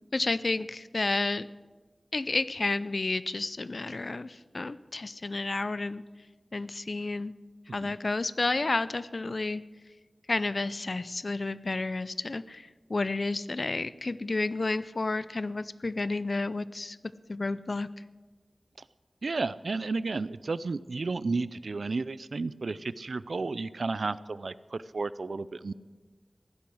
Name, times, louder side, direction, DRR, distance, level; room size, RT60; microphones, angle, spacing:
voice 1, 0.1-1.5 2.1-6.0 6.5-7.3 7.7-9.6 10.3-17.0 17.3-17.9, left 3 dB, 60° left, 16 dB, 0.5 m, -31 dB
voice 2, 19.2-25.7, right 3 dB, 90° right, 16 dB, 0.4 m, -32 dB
16.0 x 11.5 x 6.3 m, 1.4 s
wide cardioid pair, 75°, 0 cm